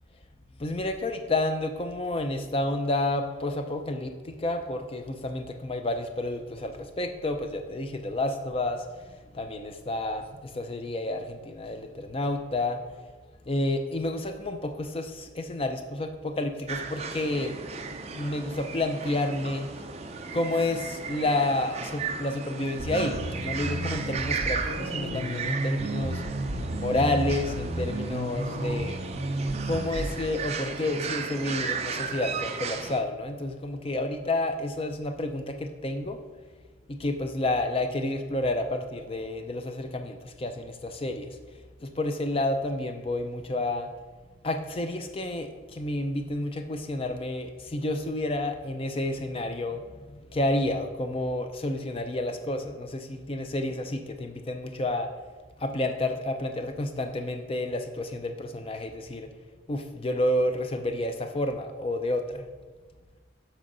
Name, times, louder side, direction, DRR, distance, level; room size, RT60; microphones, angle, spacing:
voice 1, 0.6-12.8 13.5-17.6 18.1-19.7 20.3-26.2 26.7-29.0 29.7-36.2 36.9-41.4 41.8-43.9 44.4-55.1 55.6-59.3 59.7-62.5, left 1 dB, 25° left, 6 dB, 0.5 m, -30 dB
sound 1, 16.7-33.0, right 5 dB, 30° right, 0.4 m, -35 dB
sound 2, 22.8-30.2, right 1 dB, 65° right, 1.3 m, -32 dB
7.6 x 4.4 x 5.4 m, 1.4 s
head